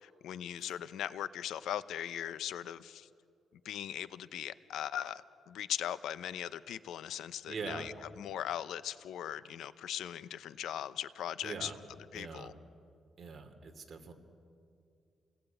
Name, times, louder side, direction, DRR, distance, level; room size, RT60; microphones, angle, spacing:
voice 1, 0.0-3.1 3.6-11.7 12.1-12.5, left 10 dB, 85° left, 15 dB, 0.8 m, -39 dB
voice 2, 7.5-7.9 11.4-11.8 12.1-12.5 13.2-14.1, right 4 dB, 40° right, 5 dB, 2.8 m, -43 dB
28.0 x 19.5 x 9.2 m, 2.4 s
cardioid pair, 115°, 0 cm